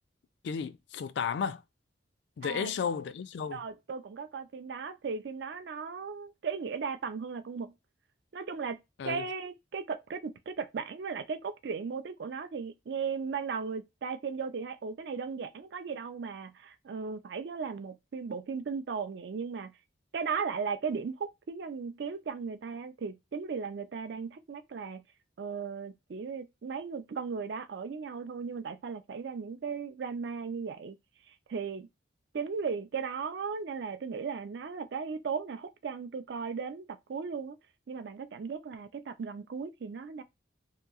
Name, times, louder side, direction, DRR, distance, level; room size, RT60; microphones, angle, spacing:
voice 1, 0.4-1.6 2.4-3.6 9.0-9.2, left 6 dB, 65° left, 0.3 m, -33 dB
voice 2, 2.4-2.8 3.5-7.7 8.3-19.8 20.1-25.0 25.4-31.0 31.3-31.9 32.3-37.6 37.9-40.2, right 5 dB, 60° right, 0.4 m, -36 dB
2.9 x 2.6 x 2.3 m
head